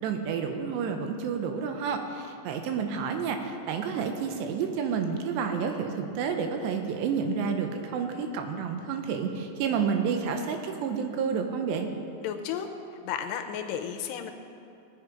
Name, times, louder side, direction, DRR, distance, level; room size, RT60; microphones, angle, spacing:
voice 1, 0.0-11.9, right 6 dB, 85° right, 5 dB, 3.1 m, -30 dB
voice 2, 12.2-12.7 13.0-14.3, left 9 dB, 85° left, 6 dB, 2.8 m, -33 dB
18.5 x 8.4 x 5.2 m, 2.6 s
omnidirectional pair, 4.9 m